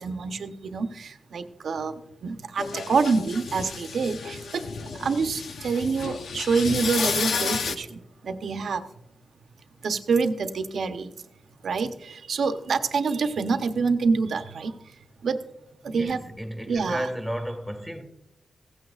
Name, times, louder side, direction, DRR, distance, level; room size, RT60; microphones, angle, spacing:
voice 1, 0.0-1.9 2.2-4.6 5.0-8.8 9.8-11.1 11.6-11.9 12.3-14.7 15.2-15.4 15.8-16.2 16.7-17.1, right 4 dB, 75° right, 0.9 m, -26 dB
maquinas vs gavilan o paloma, 2.6-7.8, left 5 dB, 80° left, 0.9 m, -31 dB
voice 2, 15.9-18.0, equal, ahead, 1.7 m, -33 dB
16.0 x 15.5 x 2.4 m
wide cardioid pair, 115°, 0 cm